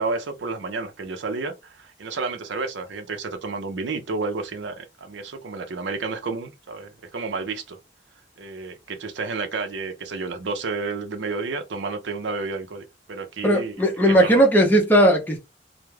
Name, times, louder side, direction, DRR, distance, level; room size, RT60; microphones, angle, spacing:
voice 1, 0.0-7.8 8.4-14.4, right 4 dB, 80° right, 0.5 m, -31 dB
voice 2, 13.4-15.4, right 1 dB, 10° left, 0.6 m, -17 dB
2.3 x 2.1 x 3.1 m
head